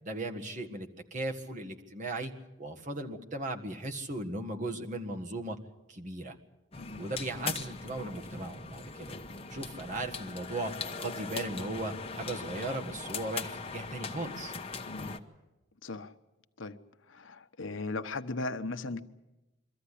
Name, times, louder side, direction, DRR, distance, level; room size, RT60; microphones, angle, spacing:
voice 1, 0.0-2.3 2.6-5.6 5.9-6.4 7.0-9.1 9.5-10.7 11.0-14.5, right 2 dB, 40° right, 4 dB, 1.7 m, -37 dB
sound 1, 6.7-15.2, left 4 dB, 30° left, 1.1 m, -40 dB
voice 2, 6.8-7.1 14.9-15.2 15.8-16.1 16.6-16.8 17.1-19.0, left 3 dB, 75° left, 9 dB, 1.0 m, -37 dB
23.5 x 14.0 x 10.0 m, 1.0 s
head